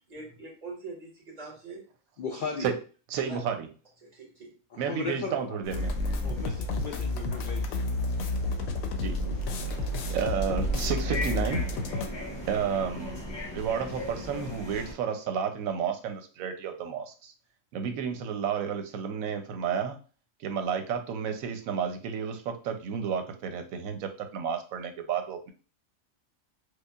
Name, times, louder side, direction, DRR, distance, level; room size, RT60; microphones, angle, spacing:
voice 1, 0.1-1.8 2.3-2.4 3.3-3.4 4.1-4.5, right 3 dB, 30° right, -3 dB, 1.4 m, -43 dB
voice 2, 2.2-2.7 4.7-5.6 6.2-7.9 8.9-9.1, left 4 dB, 70° left, 2 dB, 0.4 m, -37 dB
voice 3, 3.1-3.5 4.8-5.9 9.0-9.1 9.8-11.8 12.5-13.2 13.5-17.3 17.7-20.0 20.4-25.5, right 7 dB, 85° right, 7 dB, 1.0 m, -31 dB
sound 1, 5.6-14.9, equal, 20° left, 1.0 m, -38 dB
sound 2, 5.7-12.1, left 2 dB, 90° left, 1.0 m, -30 dB
4.8 x 2.2 x 2.3 m, 0.36 s
omnidirectional pair, 1.4 m